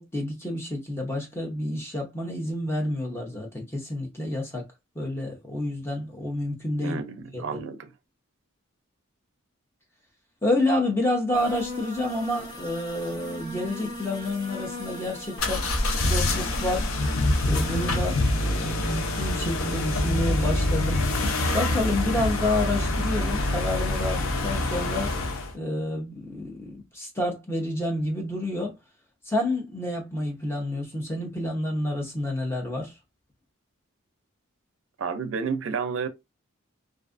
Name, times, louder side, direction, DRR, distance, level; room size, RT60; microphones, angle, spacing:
voice 1, 0.0-4.7 4.9-7.0 7.3-7.6 10.4-15.7 16.0-17.0 17.4-21.1 21.5-25.1 25.5-28.8 29.2-32.9, left 1 dB, 10° left, 0.6 m, -29 dB
voice 2, 6.8-7.9 35.0-36.1, right 5 dB, 70° right, 0.4 m, -30 dB
sound 1, 11.3-18.0, left 1 dB, 45° left, 1.4 m, -38 dB
sound 2, 15.4-25.5, left 1 dB, 80° left, 0.6 m, -25 dB
2.5 x 2.4 x 2.4 m
head